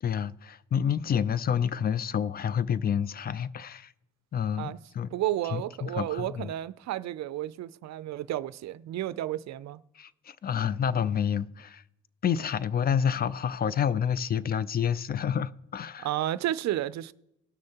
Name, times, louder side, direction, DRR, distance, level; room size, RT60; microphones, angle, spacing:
voice 1, 0.0-3.9 4.3-5.1 5.5-6.5 10.0-11.8 12.2-16.1, left 8 dB, 30° left, 0.4 m, -29 dB
voice 2, 5.1-9.8 16.0-17.1, right 13 dB, 65° right, 0.5 m, -32 dB
18.5 x 6.3 x 2.9 m
cardioid pair, 90°, 30 cm